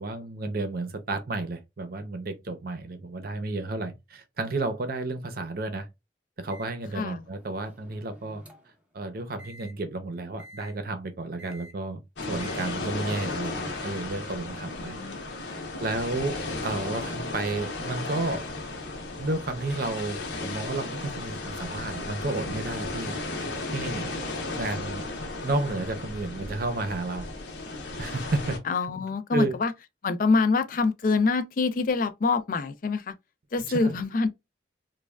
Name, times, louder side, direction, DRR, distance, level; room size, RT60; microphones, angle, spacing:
voice 1, 0.0-5.9 6.4-8.4 8.9-12.0 12.3-15.0 15.8-18.5 19.2-24.1 24.6-25.0 25.4-27.3 28.0-28.6 29.3-29.5 33.8-33.9, right 2 dB, 55° right, 0.6 m, -32 dB
Microwave oven, 6.5-8.8 9.4-9.7 10.4-10.7 11.4-11.7 12.4-12.7, equal, 5° right, 0.6 m, -50 dB
voice 2, 6.9-7.2 14.8-15.6 28.6-29.7 30.0-33.1 33.5-34.3, left 4 dB, 45° left, 0.4 m, -26 dB
sound 1, 12.2-28.6, left 2 dB, 75° left, 0.8 m, -35 dB
3.1 x 2.2 x 2.3 m
head